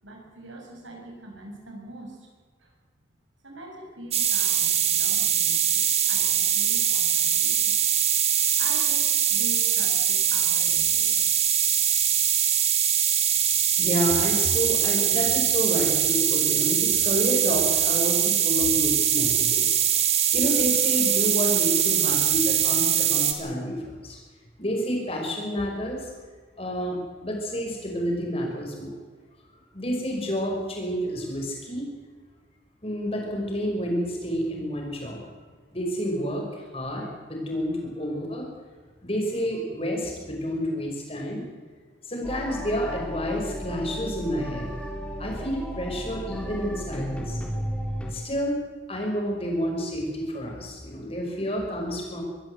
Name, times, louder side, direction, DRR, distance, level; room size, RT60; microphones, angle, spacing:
voice 1, 0.0-2.3 2.6-2.7 3.4-5.8 6.1-7.7 8.6-11.4 12.0-12.1, right 1 dB, 90° right, 1 dB, 6.7 m, -43 dB
sound 1, 4.1-23.3, right 9 dB, 35° right, 1.8 m, -22 dB
voice 2, 13.8-19.8 20.3-24.2 24.6-26.1 26.6-28.9 29.7-31.9 32.8-35.3 35.7-38.4 39.0-41.5 42.0-44.7 45.2-47.4 48.1-48.6 48.9-52.2, equal, 30° left, 0 dB, 5.7 m, -29 dB
sound 2, 42.2-48.1, equal, 5° left, 3.3 m, -34 dB
22.5 x 15.0 x 8.1 m, 1.5 s
head